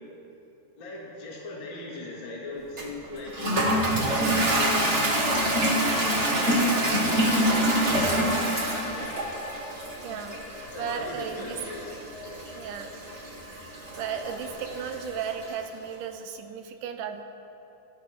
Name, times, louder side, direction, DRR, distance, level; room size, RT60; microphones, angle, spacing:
voice 1, 0.8-4.9 5.5-7.7 8.2-8.7 8.9-9.2 10.7-12.0, left 2 dB, 40° left, -4 dB, 2.6 m, -38 dB
Toilet flush, 2.8-15.5, right 1 dB, 40° right, 1.0 m, -26 dB
Wind instrument woodwind instrument, 5.5-9.8 12.4-12.6, left 3 dB, 80° left, 3.0 m, -40 dB
voice 2, 10.0-11.6 12.6-13.0 13.5-13.7 14.0-17.2, right 7 dB, 75° right, 7 dB, 2.1 m, -35 dB
24.5 x 15.5 x 3.6 m, 3.0 s
omnidirectional pair, 4.1 m